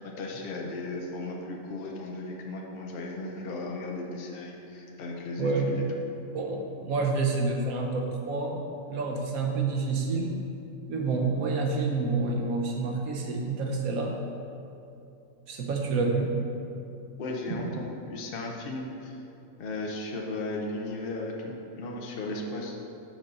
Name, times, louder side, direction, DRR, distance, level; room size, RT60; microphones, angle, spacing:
voice 1, 0.0-5.8 17.2-19.2 19.6-22.8, left 2 dB, 50° left, 0 dB, 0.8 m, -36 dB
voice 2, 5.4-5.8 6.3-8.6 8.9-10.3 10.9-14.2 15.5-16.3 17.5-17.6, right 3 dB, 85° right, 1 dB, 1.3 m, -28 dB
6.1 x 4.2 x 5.2 m, 2.8 s
omnidirectional pair, 1.4 m